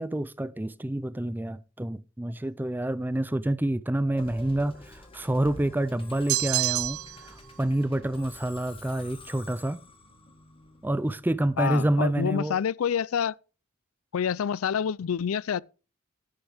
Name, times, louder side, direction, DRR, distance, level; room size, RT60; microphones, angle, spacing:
voice 1, 0.0-7.0 7.6-9.8 10.8-12.6, right 1 dB, 10° right, 0.4 m, -28 dB
Musical instrument, 4.2-11.5, left 2 dB, 25° left, 1.8 m, -48 dB
sound 1, 6.3-7.3, right 17 dB, 80° right, 0.4 m, -27 dB
voice 2, 11.6-13.3 14.1-15.6, left 7 dB, 75° left, 0.4 m, -27 dB
10.5 x 10.5 x 3.4 m
head